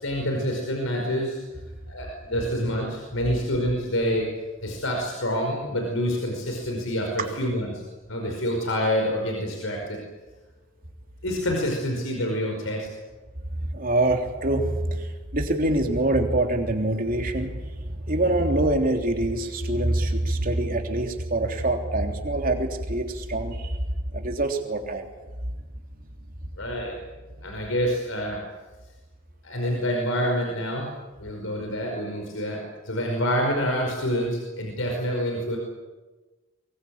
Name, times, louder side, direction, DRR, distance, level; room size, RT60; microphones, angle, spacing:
voice 1, 0.0-1.4 1.9-4.3 4.6-7.8 8.1-10.0 11.2-12.9 26.6-27.0 27.4-28.4 29.4-30.9 31.2-35.6, equal, 80° left, 1 dB, 5.2 m, -27 dB
voice 2, 13.7-15.1 15.3-17.5 18.1-23.8 24.1-25.1, right 1 dB, 45° right, 3 dB, 3.4 m, -24 dB
24.0 x 23.0 x 8.8 m, 1.2 s
head